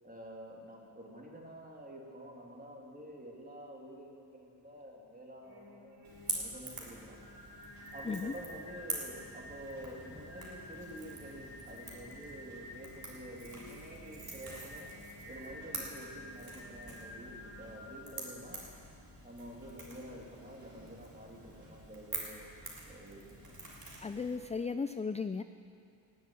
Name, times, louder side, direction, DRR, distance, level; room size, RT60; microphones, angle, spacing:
voice 1, 0.0-7.3 7.9-14.9 15.3-18.7 19.2-22.5 22.9-23.6 24.1-24.3, equal, 20° right, -2 dB, 3.0 m, -49 dB
Singing, 5.4-18.0, left 1 dB, 75° right, 5.1 m, -51 dB
Crackle / Crack, 6.0-24.4, right 2 dB, 50° right, 3.6 m, -46 dB
voice 2, 24.0-25.4, left 5 dB, 15° left, 10 dB, 0.3 m, -35 dB
17.5 x 7.5 x 9.8 m, 2.5 s
cardioid pair, 80°, 45 cm